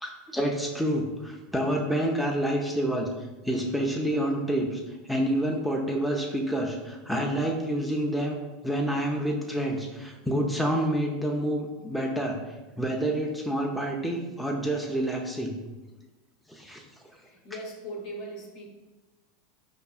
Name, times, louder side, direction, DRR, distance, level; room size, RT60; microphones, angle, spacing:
voice 1, 0.0-3.1 3.4-8.4 8.6-12.4 12.8-15.5 16.5-16.8, right 1 dB, ahead, -1 dB, 0.5 m, -28 dB
voice 2, 17.0-18.7, right 1 dB, 60° left, 0 dB, 0.9 m, -39 dB
4.7 x 2.6 x 2.3 m, 1.1 s
hypercardioid pair, 105°, 0 cm